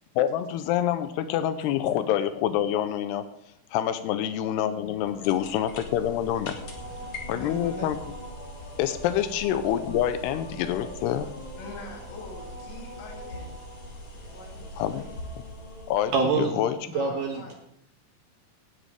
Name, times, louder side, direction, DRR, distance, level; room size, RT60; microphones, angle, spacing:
voice 1, 0.2-3.3 3.7-6.6 7.3-8.0 8.8-11.3 14.8-15.0 15.9-16.8, left 11 dB, 85° left, 10 dB, 2.4 m, -26 dB
sound 1, 4.2-16.7, equal, 10° left, 3.8 m, -45 dB
sound 2, 4.8-16.6, left 1 dB, 50° left, 2.4 m, -43 dB
voice 2, 6.9-7.9 9.2-9.3 11.6-13.6 14.2-15.1 16.9-17.5, left 2 dB, 70° left, 0 dB, 4.8 m, -44 dB
voice 3, 16.1-16.5 16.9-17.5, right 4 dB, 75° right, 3 dB, 2.0 m, -25 dB
17.5 x 11.5 x 3.4 m, 0.75 s
omnidirectional pair, 5.5 m